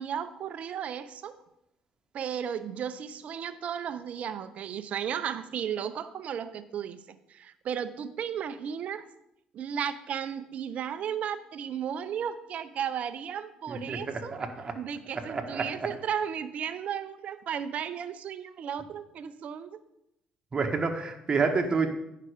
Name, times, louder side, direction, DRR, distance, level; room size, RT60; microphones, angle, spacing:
voice 1, 0.0-1.4 2.1-7.0 7.3-9.0 9.5-14.4 14.8-19.7, right 8 dB, 60° right, 12 dB, 0.7 m, -34 dB
voice 2, 13.7-14.7 15.3-15.9 20.5-21.9, right 4 dB, 35° right, 3 dB, 1.5 m, -29 dB
9.7 x 5.8 x 5.0 m, 0.82 s
supercardioid pair, 75°, 3 cm